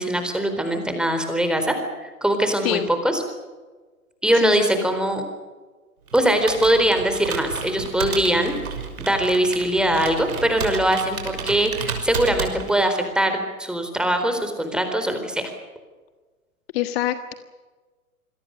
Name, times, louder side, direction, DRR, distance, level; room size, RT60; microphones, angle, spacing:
voice 1, 0.0-3.2 4.2-5.2 6.1-8.5 9.0-15.4, right 1 dB, ahead, 6 dB, 4.1 m, -22 dB
voice 2, 4.3-4.8 16.7-17.3, left 11 dB, 45° left, 10 dB, 1.5 m, -25 dB
Computer keyboard, 6.1-13.0, right 5 dB, 75° right, 6.0 m, -32 dB
27.5 x 22.0 x 6.6 m, 1.3 s
hypercardioid pair, 125°, 44 cm